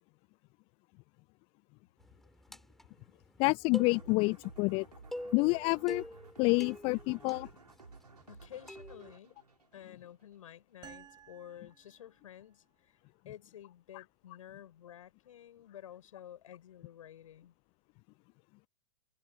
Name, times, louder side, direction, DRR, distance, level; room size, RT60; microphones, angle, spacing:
sound 1, 2.0-9.1, left 1 dB, ahead, 6.9 m, -48 dB
voice 1, 3.4-4.9 5.3-6.0 6.4-7.5, left 29 dB, 25° left, 0.6 m, -28 dB
sound 2, 3.7-10.5, right 4 dB, 75° right, 4.6 m, -55 dB
voice 2, 8.3-9.3 9.7-13.0 13.2-17.5, left 11 dB, 55° left, 6.6 m, -51 dB
sound 3, 10.8-12.6, right 10 dB, 20° right, 7.5 m, -56 dB
figure-of-eight pair, 110°, 20 cm